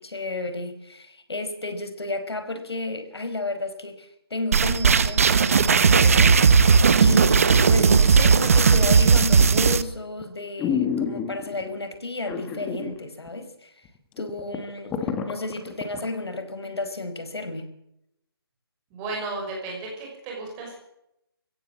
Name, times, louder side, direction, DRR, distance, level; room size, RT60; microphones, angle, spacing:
voice 1, 0.0-6.4 7.0-13.7 14.2-15.0 15.3-17.7, left 2 dB, 85° left, 9 dB, 4.9 m, -32 dB
sound 1, 4.5-9.8, right 5 dB, 35° right, 1.1 m, -17 dB
sound 2, 9.4-9.8 10.2-10.3 10.6-11.6 12.3-13.0 13.3-13.4 13.8-13.9 14.2-16.1 16.5-16.6, left 7 dB, 5° left, 1.2 m, -29 dB
voice 2, 18.9-20.7, right 3 dB, 15° right, -1 dB, 5.9 m, -34 dB
22.0 x 16.0 x 7.6 m, 0.81 s
hypercardioid pair, 170°, 13 cm